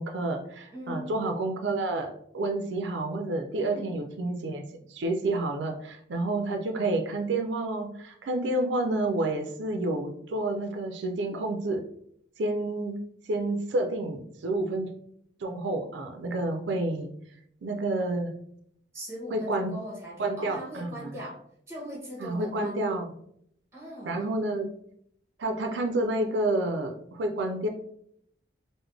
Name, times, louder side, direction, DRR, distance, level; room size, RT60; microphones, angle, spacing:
voice 1, 0.0-11.8 12.4-14.9 15.4-17.1 17.6-18.3 19.3-19.7 20.2-21.2 22.2-23.1 24.1-24.7 25.4-27.7, right 2 dB, 90° right, 4 dB, 0.4 m, -29 dB
voice 2, 0.7-1.1 3.7-4.0 18.9-21.4 21.7-22.9 23.7-24.2, equal, 15° right, -3 dB, 1.1 m, -40 dB
3.7 x 2.1 x 3.3 m, 0.69 s
head